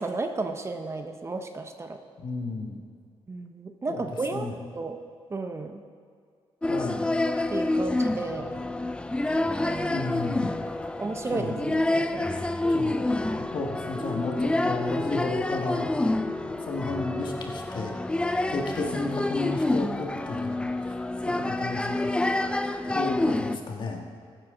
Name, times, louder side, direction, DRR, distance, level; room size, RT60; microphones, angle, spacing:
voice 1, 0.0-2.0 3.3-5.0 5.3-5.8 7.5-8.5 9.3-10.0 11.0-12.3, right 3 dB, 30° right, 6 dB, 0.8 m, -33 dB
voice 2, 2.2-2.8 3.9-4.0 4.3-4.5 6.7-7.1 9.9-10.6 11.3-11.6 12.7-13.1 13.5-15.9 16.6-17.9 18.5-20.7 21.3-21.9 22.9-24.0, left 3 dB, 55° left, 1 dB, 1.7 m, -32 dB
sound 1, 6.6-23.6, left 2 dB, 10° left, 0.5 m, -28 dB
15.5 x 9.2 x 3.8 m, 2.2 s
cardioid pair, 95°, 10 cm